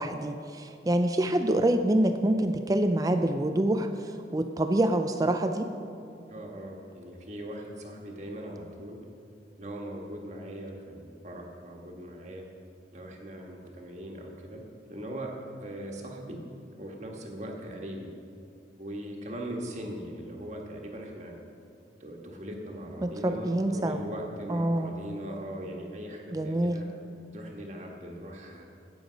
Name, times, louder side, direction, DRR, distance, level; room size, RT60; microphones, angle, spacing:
voice 1, 0.0-5.7 23.0-24.0 24.5-24.9 26.3-26.8, right 1 dB, 20° right, 7 dB, 0.4 m, -26 dB
voice 2, 6.3-9.0 9.6-12.4 12.9-14.6 14.9-15.3 15.6-16.4 16.7-18.1 18.8-21.3 22.0-26.9 27.3-28.7, right 1 dB, 40° right, 0 dB, 1.5 m, -40 dB
16.5 x 6.9 x 5.2 m, 2.5 s
head